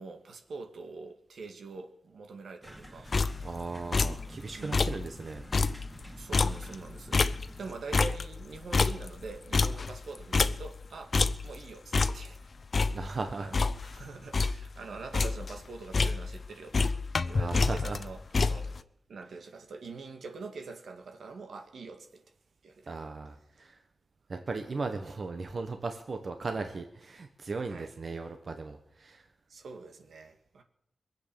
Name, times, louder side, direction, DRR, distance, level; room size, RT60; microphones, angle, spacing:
voice 1, 0.0-3.1 4.5-4.9 6.2-11.2 11.4-12.5 13.4-17.0 17.2-22.2 22.6-22.9 24.3-24.5 27.7-27.9 29.5-30.6, right 4 dB, 80° right, 1.9 m, -44 dB
sound 1, 2.6-7.7, equal, 10° right, 2.6 m, -48 dB
voice 2, 2.9-5.5 12.9-13.6 17.3-18.0 22.9-23.8 24.3-29.3, right 3 dB, 55° right, 1.3 m, -37 dB
sound 2, 3.1-3.6 3.9-4.3 4.6-5.1 5.4-7.7 7.9-10.9 11.1-11.6 11.9-12.4 12.7-14.0 14.3-14.7 15.0-15.6 15.9-16.5 16.7-18.8, left 4 dB, 55° left, 0.6 m, -28 dB
22.0 x 8.1 x 7.0 m
wide cardioid pair, 80°, 0 cm